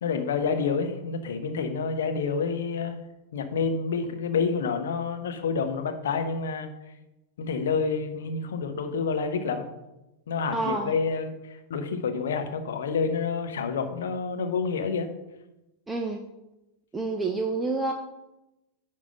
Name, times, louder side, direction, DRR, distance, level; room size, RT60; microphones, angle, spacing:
voice 1, 0.0-3.0 3.3-6.7 7.4-9.7 10.3-15.1, left 5 dB, 60° left, 6 dB, 1.0 m, -28 dB
voice 2, 10.5-11.0 15.9-16.2 16.9-17.9, right 3 dB, 10° right, 3 dB, 0.7 m, -28 dB
9.7 x 3.7 x 6.3 m, 0.95 s
figure-of-eight pair, 90°, 0 cm